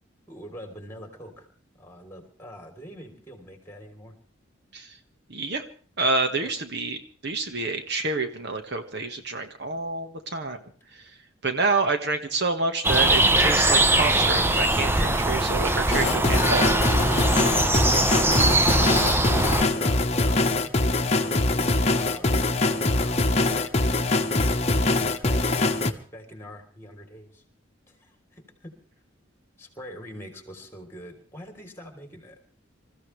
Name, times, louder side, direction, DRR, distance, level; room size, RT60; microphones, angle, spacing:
voice 1, 0.3-1.5 1.8-4.1 6.4-6.5 17.7-18.1 18.9-24.3 24.6-25.5 26.1-27.4 27.9-28.7 29.6-32.4, equal, 15° left, 4 dB, 3.6 m, -44 dB
voice 2, 5.3-5.6 6.0-10.6 10.9-11.0 11.4-17.1, right 3 dB, 55° right, 6 dB, 1.6 m, -28 dB
sound 1, 12.8-19.7, right 2 dB, 10° right, 0.8 m, -21 dB
sound 2, 15.9-25.9, left 2 dB, 35° left, 1.2 m, -23 dB
27.0 x 15.0 x 3.3 m, 0.42 s
head